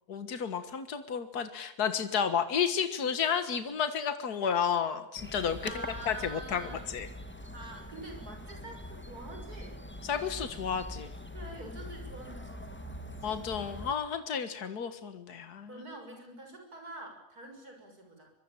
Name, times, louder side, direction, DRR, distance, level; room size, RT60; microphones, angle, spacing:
voice 1, 0.1-6.6 6.9-7.1 10.0-11.1 13.2-15.7, left 7 dB, 80° left, 10 dB, 2.0 m, -32 dB
sound 1, 5.2-13.9, left 1 dB, 5° left, 2.0 m, -43 dB
voice 2, 5.6-6.9 7.5-9.8 11.3-13.4 15.7-18.3, right 2 dB, 75° right, 3 dB, 7.0 m, -46 dB
24.5 x 23.0 x 8.9 m, 0.82 s
omnidirectional pair, 1.7 m